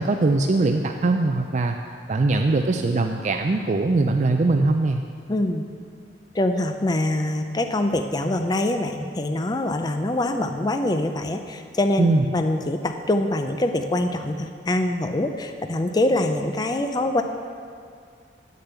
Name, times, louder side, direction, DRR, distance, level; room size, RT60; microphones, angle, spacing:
voice 1, 0.0-1.8 2.1-5.0 12.0-12.3, right 2 dB, 40° right, 4 dB, 0.4 m, -21 dB
voice 2, 5.3-5.7 6.3-17.2, left 1 dB, 25° left, 6 dB, 0.5 m, -24 dB
9.6 x 6.7 x 8.1 m, 2.3 s
head